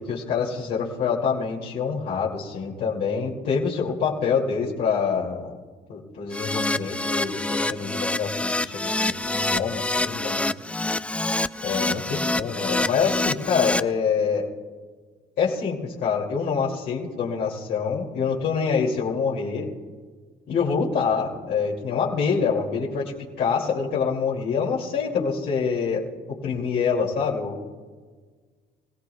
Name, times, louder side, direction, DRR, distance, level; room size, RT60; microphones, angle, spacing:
voice 1, 0.0-5.6 5.9-10.5 11.6-14.5 15.4-19.7 20.5-23.1 23.4-27.6, left 6 dB, 75° left, -5 dB, 2.6 m, -26 dB
Keyboard (musical), 6.3-13.8, left 2 dB, 5° left, 0.3 m, -26 dB
24.5 x 16.5 x 2.3 m, 1.5 s
cardioid pair, 110°, 17 cm